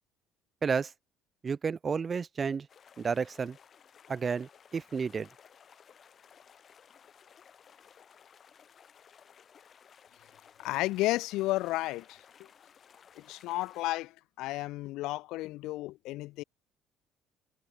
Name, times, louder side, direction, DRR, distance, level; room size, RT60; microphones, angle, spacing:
voice 1, 1.4-2.7 3.0-3.6 4.1-5.3, right 5 dB, 30° right, 0.5 m, -31 dB
sound 1, 2.7-13.9, left 7 dB, 40° left, 3.4 m, -58 dB
voice 2, 10.6-12.5 13.2-16.4, left 18 dB, 75° left, 0.4 m, -33 dB
cardioid pair, 110°, 0 cm